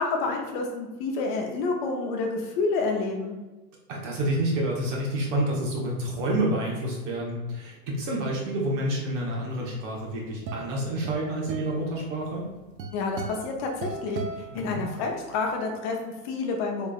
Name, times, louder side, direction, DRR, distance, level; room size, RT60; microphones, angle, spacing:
voice 1, 0.0-3.4 12.9-14.2 14.5-16.9, left 3 dB, 30° left, 1 dB, 0.7 m, -29 dB
voice 2, 3.9-12.4 14.5-14.8, right 1 dB, 45° right, -3 dB, 1.4 m, -28 dB
sound 1, 9.9-15.3, right 4 dB, 85° right, 0.7 m, -39 dB
3.8 x 3.4 x 2.4 m, 1.2 s
hypercardioid pair, 135°, 49 cm